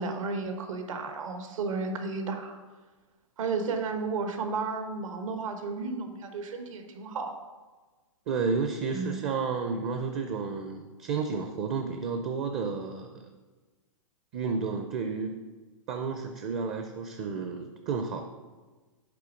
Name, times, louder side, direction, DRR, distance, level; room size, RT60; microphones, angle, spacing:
voice 1, 0.0-2.6 3.4-7.3 8.9-9.2, right 4 dB, 70° right, 6 dB, 1.2 m, -33 dB
voice 2, 8.3-13.3 14.3-15.3 15.9-18.2, right 5 dB, 30° right, 6 dB, 0.5 m, -31 dB
6.8 x 5.2 x 5.1 m, 1.3 s
hypercardioid pair, 145°, 17 cm